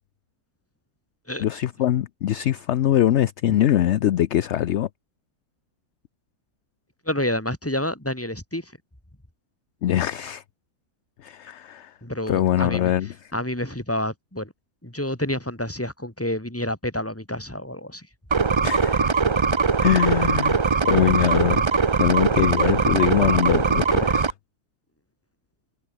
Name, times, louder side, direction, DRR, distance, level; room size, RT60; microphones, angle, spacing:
voice 1, 1.4-4.9 9.8-10.4 11.2-11.9 12.3-13.1 18.6-19.1 19.8-20.6 20.9-24.3, left 12 dB, 60° left, 0.8 m, -22 dB
voice 2, 7.0-8.7 12.0-12.9 13.3-14.5 14.8-18.1 22.9-23.0, left 1 dB, 10° left, 3.2 m, -29 dB
sound 1, 18.3-24.3, right 5 dB, 45° right, 0.3 m, -21 dB
omnidirectional pair, 1.7 m